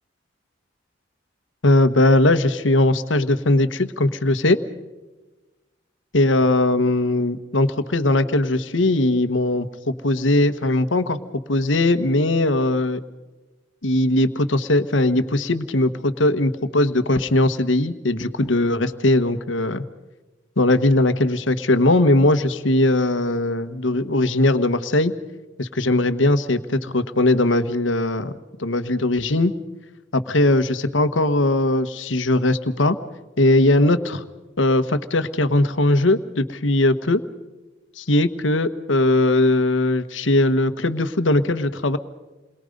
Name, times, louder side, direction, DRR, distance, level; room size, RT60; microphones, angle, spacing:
voice 1, 1.6-4.6 6.1-11.2 11.5-13.0 13.8-19.8 20.6-25.1 25.6-28.3 28.6-29.5 30.1-33.0 33.4-34.2 34.6-37.2 38.0-42.0, left 2 dB, 85° left, 11 dB, 1.2 m, -19 dB
29.0 x 22.5 x 5.3 m, 1.2 s
head